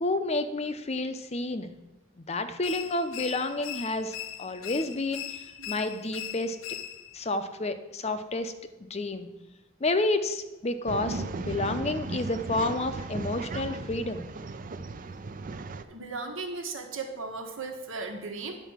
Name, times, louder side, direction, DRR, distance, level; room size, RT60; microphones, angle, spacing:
voice 1, 0.0-1.7 2.2-6.6 7.1-8.5 8.9-9.3 9.8-14.3, left 2 dB, 30° left, 9 dB, 0.6 m, -30 dB
sound 1, 2.6-7.2, left 11 dB, 80° left, 0.6 m, -40 dB
Male speech man speaking / Chatter / Rattle, 10.9-15.8, right 3 dB, 40° right, 0.5 m, -36 dB
voice 2, 15.9-18.6, right 3 dB, 80° right, 3 dB, 1.5 m, -36 dB
10.0 x 4.5 x 7.2 m, 1.0 s
head